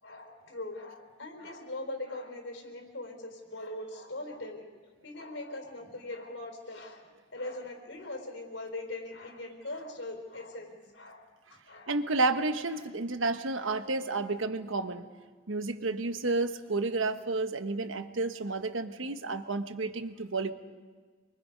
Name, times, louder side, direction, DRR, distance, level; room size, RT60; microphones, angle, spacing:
voice 1, 0.0-4.7 5.0-11.2 11.5-12.0 12.7-12.9 13.6-13.9, left 2 dB, 75° left, 3 dB, 4.3 m, -41 dB
voice 2, 11.9-15.0 15.5-20.5, right 3 dB, 90° right, 8 dB, 1.2 m, -31 dB
27.0 x 23.5 x 5.3 m, 1.4 s
head